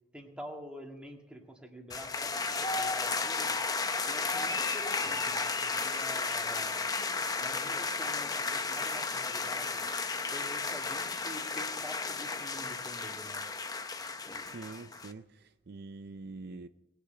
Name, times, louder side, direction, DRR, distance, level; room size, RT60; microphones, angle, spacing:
voice 1, 0.1-3.6 4.0-6.8 7.4-9.8 10.3-13.4, equal, 5° right, 1.9 m, -47 dB
sound 1, 1.9-15.1, left 4 dB, 20° left, 0.6 m, -33 dB
voice 2, 14.4-16.7, right 3 dB, 55° right, 0.5 m, -45 dB
19.5 x 6.8 x 7.9 m
head